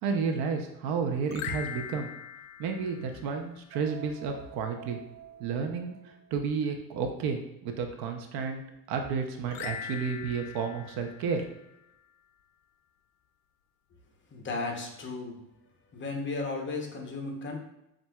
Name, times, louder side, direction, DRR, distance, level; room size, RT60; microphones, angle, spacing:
voice 1, 0.0-2.1 2.6-5.0 5.4-6.0 6.3-8.6 8.9-11.4, right 5 dB, 65° right, 5 dB, 0.7 m, -31 dB
sound 1, 1.3-3.7 9.5-12.1, left 9 dB, 60° left, 0.5 m, -42 dB
sound 2, 3.7-6.5, right 11 dB, 25° right, 0.6 m, -49 dB
voice 2, 14.3-15.4 15.9-17.6, left 3 dB, 30° left, 2 dB, 0.9 m, -35 dB
7.3 x 2.6 x 2.3 m, 0.86 s
cardioid pair, 120°, 40 cm